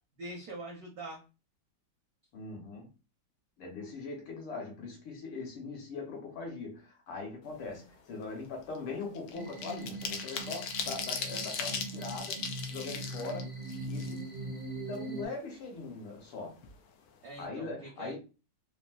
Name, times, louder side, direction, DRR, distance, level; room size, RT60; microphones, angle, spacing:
voice 1, 0.2-1.2 17.2-18.2, right 2 dB, 75° right, 0.8 m, -43 dB
voice 2, 2.3-2.9 3.6-13.5 13.9-14.3 14.9-16.6 17.4-18.2, left 3 dB, 75° left, 1.8 m, -41 dB
sound 1, 7.6-7.8 8.1-14.6 14.9-15.0 15.3-16.3 16.6-16.8 17.1-17.4, left 6 dB, 90° left, 0.9 m, -39 dB
sound 2, 9.3-15.3, right 2 dB, 45° left, 0.7 m, -41 dB
3.9 x 2.1 x 2.3 m
omnidirectional pair, 2.4 m